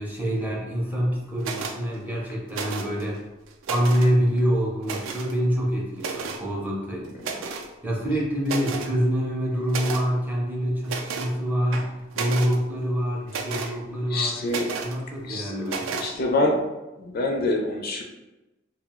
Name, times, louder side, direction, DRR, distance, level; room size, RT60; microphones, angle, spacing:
voice 1, 0.0-3.2 3.7-7.1 7.8-14.4 14.8-16.0, equal, 10° right, -2 dB, 0.4 m, -26 dB
sound 1, 1.4-1.8 2.5-3.0 3.5-4.1 4.8-5.3 6.0-6.4 7.2-7.7 8.1-8.2 8.4-8.9 9.7-10.1 10.8-11.3 11.7-12.6 13.3-13.7 14.5-15.0 15.7-16.1, right 5 dB, 75° right, 0.3 m, -32 dB
voice 2, 14.1-14.7 15.2-15.5 16.0-16.7 17.0-18.0, left 2 dB, 50° left, 1 dB, 0.4 m, -25 dB
2.3 x 2.1 x 3.4 m, 1.0 s
head